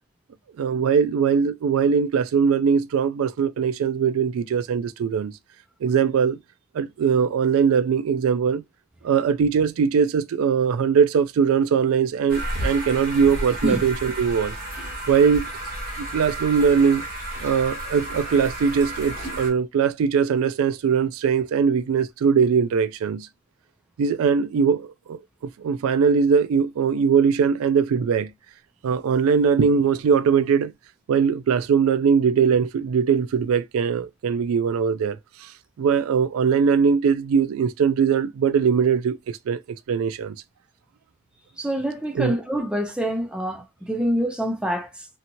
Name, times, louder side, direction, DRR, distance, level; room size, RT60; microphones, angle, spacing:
voice 1, 0.6-5.3 5.8-6.4 6.7-8.6 9.0-14.5 15.1-15.5 16.1-17.0 17.4-23.3 24.0-25.2 25.6-28.3 28.8-30.7 31.1-35.5 35.8-39.6 39.9-40.4 42.2-42.4, right 6 dB, 75° right, 0.3 m, -21 dB
sound 1, 12.3-19.5, right 1 dB, 40° right, 1.3 m, -32 dB
voice 2, 41.6-45.1, equal, 5° right, 0.5 m, -26 dB
2.8 x 2.8 x 2.6 m
head